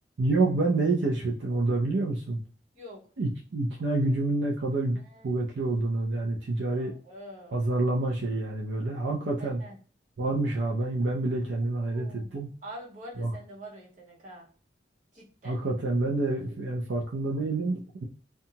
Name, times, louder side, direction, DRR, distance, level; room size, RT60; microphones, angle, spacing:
voice 1, 0.2-2.4 3.2-6.9 7.5-9.6 10.2-12.5 13.2-13.3 15.4-18.1, right 2 dB, 80° right, -1 dB, 0.5 m, -28 dB
voice 2, 5.0-5.3 6.7-7.6 9.4-9.8 11.8-14.5 15.1-15.6, equal, 45° right, -5 dB, 1.2 m, -46 dB
2.7 x 2.3 x 2.7 m, 0.42 s
head